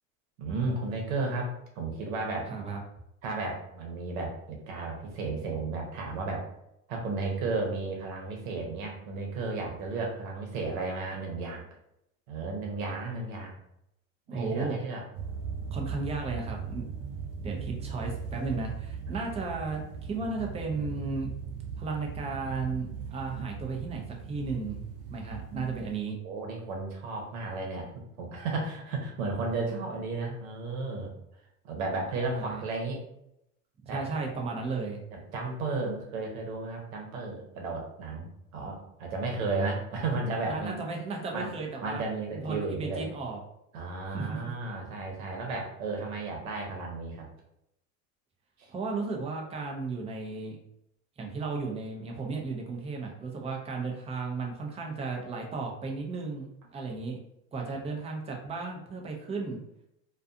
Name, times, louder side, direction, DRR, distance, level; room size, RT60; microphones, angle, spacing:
voice 1, 0.4-2.5 3.2-6.5 6.9-11.6 12.3-13.5 14.3-15.0 17.0-17.2 19.1-19.2 26.2-31.1 31.6-33.0 33.8-34.0 35.1-40.8 41.3-41.5 41.8-43.1 43.7-47.3 48.6-48.7, right 3 dB, 75° right, 0 dB, 1.0 m, -33 dB
voice 2, 2.5-2.8 14.3-14.8 15.7-16.9 17.4-21.3 21.8-24.8 25.1-26.2 32.3-32.6 33.9-35.0 40.5-42.0 42.3-43.4 44.1-44.5 48.7-50.6 51.2-57.2 57.5-59.6, right 4 dB, 15° right, 0 dB, 0.5 m, -34 dB
sound 1, 15.1-26.0, right 6 dB, 60° right, 0.7 m, -39 dB
2.5 x 2.3 x 2.5 m, 0.80 s
hypercardioid pair, 100°, 42 cm